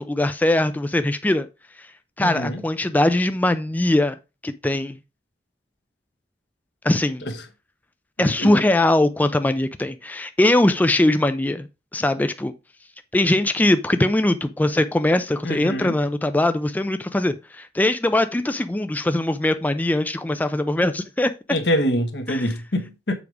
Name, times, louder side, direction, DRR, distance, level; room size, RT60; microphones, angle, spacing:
voice 1, 0.0-1.5 2.2-4.2 4.4-5.0 6.8-7.2 8.2-11.7 11.9-12.5 13.1-21.3 22.3-22.5, left 1 dB, 10° left, 0.3 m, -21 dB
voice 2, 2.2-2.6 7.2-7.3 8.2-8.5 15.4-15.9 21.5-23.2, equal, 75° left, 1.3 m, -25 dB
7.1 x 4.9 x 4.8 m
head